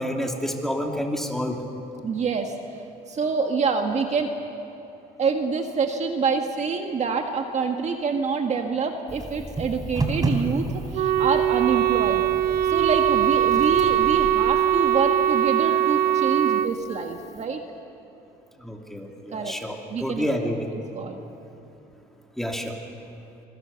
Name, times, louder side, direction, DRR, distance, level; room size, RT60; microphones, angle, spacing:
voice 1, 0.0-1.6 13.8-13.9 18.6-20.7 22.4-22.8, equal, ahead, 1 dB, 2.8 m, -29 dB
voice 2, 2.0-2.5 3.1-4.3 5.2-12.3 12.7-17.6 19.3-19.5 19.9-20.3 21.0-21.2, right 5 dB, 40° right, 4 dB, 1.7 m, -26 dB
sound 1, 9.1-17.4, right 2 dB, 25° right, 3.4 m, -33 dB
Wind instrument woodwind instrument, 10.9-16.7, right 11 dB, 65° right, 0.7 m, -21 dB
26.0 x 22.5 x 7.1 m, 2.9 s
cardioid pair, 110°, 17 cm